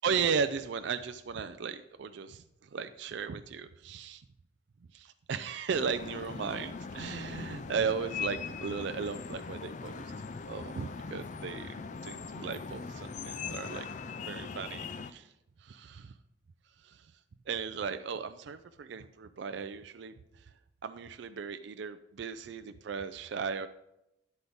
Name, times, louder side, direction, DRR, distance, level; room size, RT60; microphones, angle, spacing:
voice 1, 0.0-4.2 4.9-10.1 10.5-11.8 12.0-13.9 14.3-14.8 15.1-15.3 15.6-16.1 16.8-17.1 17.5-20.5 20.8-23.7, right 6 dB, 60° right, 10 dB, 0.4 m, -36 dB
sound 1, 5.7-15.1, left 5 dB, 40° left, 0.4 m, -40 dB
10.5 x 7.9 x 3.5 m, 0.87 s
head